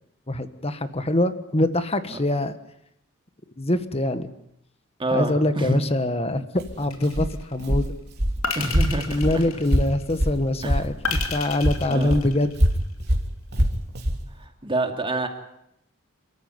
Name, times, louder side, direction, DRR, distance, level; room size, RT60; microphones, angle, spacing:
voice 1, 0.3-2.5 3.6-4.3 5.1-7.9 9.1-12.5, left 1 dB, 30° left, 11 dB, 1.5 m, -24 dB
voice 2, 5.0-5.8 8.5-9.4 10.6-10.9 11.9-12.2 14.4-15.3, right 2 dB, 25° right, 5 dB, 2.6 m, -27 dB
Walk footsteps, 6.5-11.3 11.6-14.2, equal, 50° right, 3.5 m, -24 dB
sound 1, 6.9-7.5 8.4-10.1 11.0-12.8, left 5 dB, 90° left, 3.3 m, -32 dB
29.0 x 14.0 x 9.5 m, 0.78 s
head